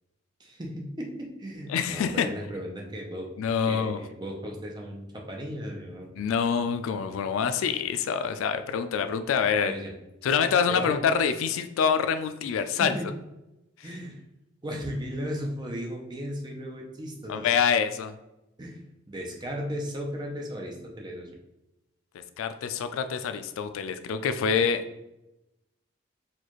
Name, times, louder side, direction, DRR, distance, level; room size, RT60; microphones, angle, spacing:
voice 1, 0.4-3.3 3.7-6.1 9.6-9.9 10.7-11.0 12.7-13.1 13.8-14.2 14.6-17.5 18.6-18.8 19.1-21.3, equal, 20° right, 0 dB, 0.5 m, -36 dB
voice 2, 1.7-2.3 3.4-4.0 6.2-9.7 10.2-12.9 13.8-13.9 17.3-18.1 22.4-24.8, left 6 dB, 80° left, 11 dB, 0.3 m, -26 dB
4.3 x 2.4 x 3.0 m, 0.92 s
head